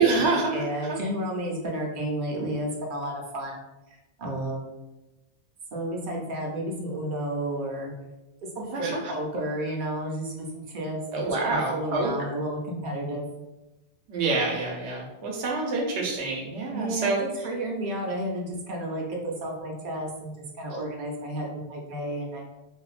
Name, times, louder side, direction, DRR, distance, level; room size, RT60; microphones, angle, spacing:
voice 1, 0.0-0.5 8.6-8.9 11.1-12.1 14.1-17.2, right 3 dB, 85° right, -1 dB, 0.9 m, -26 dB
voice 2, 0.5-3.6 3.9-4.7 5.7-7.9 8.7-13.3 16.7-22.4, right 1 dB, 60° right, -1 dB, 0.6 m, -32 dB
2.5 x 2.1 x 2.3 m, 1.0 s
omnidirectional pair, 1.1 m